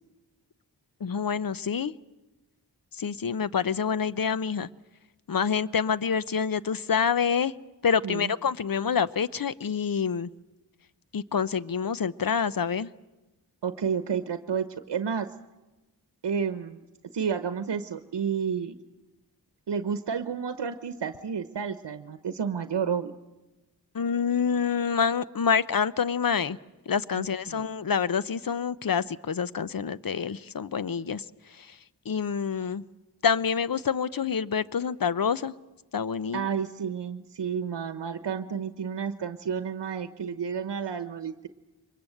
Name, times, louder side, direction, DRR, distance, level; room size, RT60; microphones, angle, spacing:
voice 1, 1.0-1.9 3.0-4.7 5.3-7.5 7.8-10.3 11.1-12.9 23.9-26.6 26.9-31.2 31.5-31.8 32.0-32.8 33.2-35.5 35.9-36.5, left 6 dB, 55° left, 16 dB, 0.8 m, -27 dB
voice 2, 13.6-15.3 16.2-16.8 17.1-18.8 19.7-23.1 27.2-27.7 36.3-41.5, right 7 dB, 75° right, 10 dB, 1.0 m, -31 dB
24.0 x 21.0 x 7.9 m, 1.1 s
cardioid pair, 45°, 41 cm